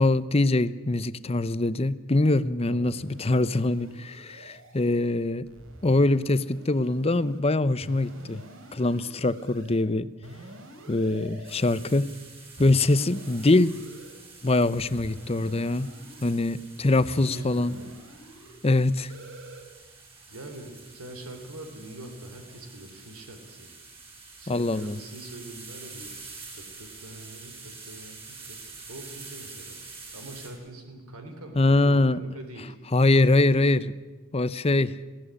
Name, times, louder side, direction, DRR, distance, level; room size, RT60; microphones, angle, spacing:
voice 1, 0.0-5.5 5.8-8.4 8.7-10.1 10.9-12.1 12.6-13.7 14.4-15.9 16.2-17.7 18.6-19.1 24.5-25.0 31.6-32.2 32.9-33.9 34.3-35.0, left 2 dB, 25° left, 15 dB, 0.7 m, -23 dB
sound 1, 3.0-4.9 5.4-7.4 7.8-9.8 10.2-11.8 12.6-14.1 14.7-16.4 17.0-18.6 19.1-19.6, right 1 dB, 60° right, 3.3 m, -47 dB
sound 2, 11.4-30.5, right 4 dB, 25° right, 5.6 m, -47 dB
voice 2, 17.1-18.0 20.3-23.7 24.4-26.1 26.5-28.6 28.9-29.8 30.1-32.8, right 1 dB, 80° right, 5 dB, 3.4 m, -43 dB
20.5 x 16.5 x 9.9 m, 1.2 s
head